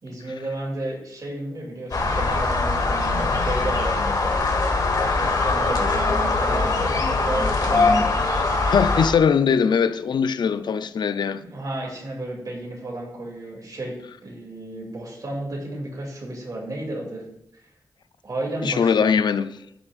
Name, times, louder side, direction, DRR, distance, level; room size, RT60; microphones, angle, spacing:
voice 1, 0.0-4.0 5.2-8.7 11.4-14.0 14.2-17.2 18.2-19.3, right 1 dB, 55° right, 2.5 m, -32 dB
sound 1, 1.9-9.1, left 3 dB, 60° left, 1.5 m, -22 dB
voice 2, 8.7-11.4 18.6-19.6, left 6 dB, 80° left, 0.4 m, -21 dB
15.0 x 6.1 x 2.4 m
wide cardioid pair, 75°, 7 cm